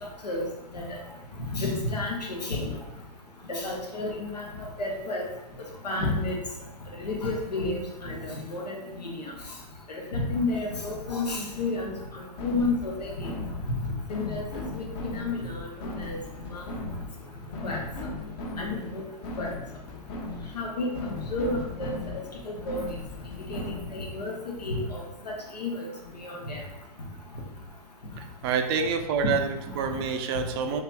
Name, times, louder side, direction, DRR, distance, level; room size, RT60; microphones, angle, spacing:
voice 1, 1.5-2.7 3.5-4.4 4.8-5.2 5.8-6.4 7.0-9.2 10.1-13.3 13.8-14.4 14.7-15.6 16.0-16.2 16.5-16.6 17.6-17.8 18.6-19.0 19.4-19.5 20.5-20.9 21.3-21.9 22.4-22.8 23.5-23.6 23.9-24.3 24.6-25.0 25.5-25.9 26.2-26.6, left 2 dB, 90° left, -1 dB, 1.0 m, -31 dB
sound 1, 10.7-24.2, left 2 dB, 40° left, 0.9 m, -38 dB
voice 2, 28.2-30.8, right 6 dB, 40° right, 6 dB, 0.4 m, -28 dB
2.9 x 2.9 x 3.4 m, 0.91 s
hypercardioid pair, 115°, 20 cm